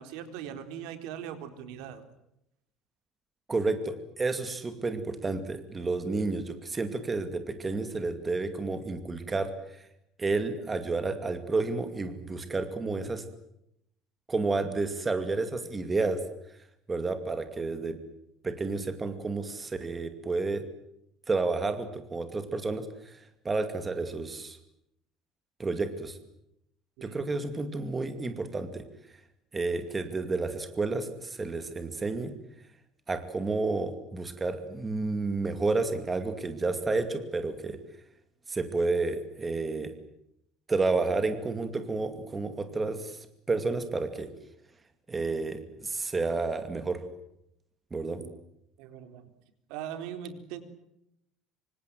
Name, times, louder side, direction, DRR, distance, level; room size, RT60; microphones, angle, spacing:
voice 1, 0.0-2.0 27.0-27.2 27.5-27.7 48.2-48.3 48.8-49.3 49.7-50.6, right 9 dB, 85° right, 9 dB, 4.1 m, -40 dB
voice 2, 3.5-9.8 10.2-13.2 14.3-16.2 16.9-18.0 18.4-20.6 21.3-24.6 25.6-26.2 27.0-28.8 29.5-32.3 33.1-37.8 38.5-39.9 40.7-44.3 45.1-47.0 47.9-48.2, right 3 dB, 15° right, 9 dB, 2.4 m, -31 dB
26.5 x 25.5 x 7.8 m, 0.79 s
cardioid pair, 170°, 0 cm